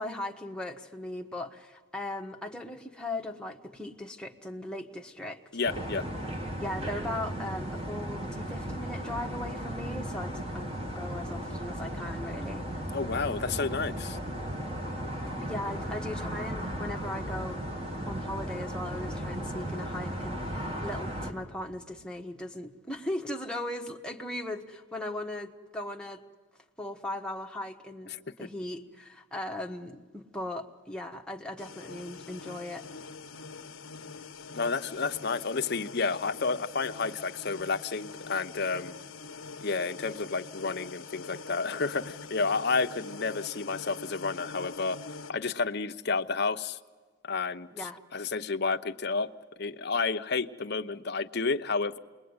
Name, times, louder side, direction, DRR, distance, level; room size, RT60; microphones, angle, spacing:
voice 1, 0.0-5.4 6.6-10.7 10.9-12.9 15.4-17.6 18.1-26.2 26.8-32.9 47.7-48.0, left 1 dB, 5° left, 1 dB, 1.3 m, -38 dB
voice 2, 5.5-6.0 12.9-14.2 28.1-28.2 34.5-38.9 39.6-45.0 45.3-46.8 47.2-49.3 49.6-52.0, left 4 dB, 55° left, 8 dB, 0.9 m, -31 dB
sound 1, 5.6-21.3, right 1 dB, 30° right, 2.4 m, -36 dB
sound 2, 31.6-45.3, left 4 dB, 85° left, 1.0 m, -44 dB
29.0 x 21.0 x 9.6 m, 1.5 s
head